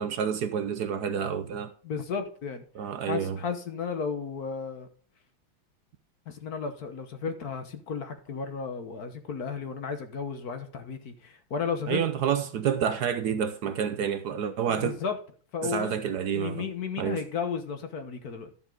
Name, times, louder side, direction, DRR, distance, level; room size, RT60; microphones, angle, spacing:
voice 1, 0.0-1.7 2.7-3.4 11.9-14.9 15.6-16.7 17.0-17.2, right 8 dB, 65° right, 1.1 m, -29 dB
voice 2, 1.8-2.6 3.1-4.9 6.3-12.0 14.7-15.2 15.5-18.5, left 6 dB, 55° left, 1.5 m, -34 dB
11.5 x 7.2 x 3.8 m
omnidirectional pair, 2.2 m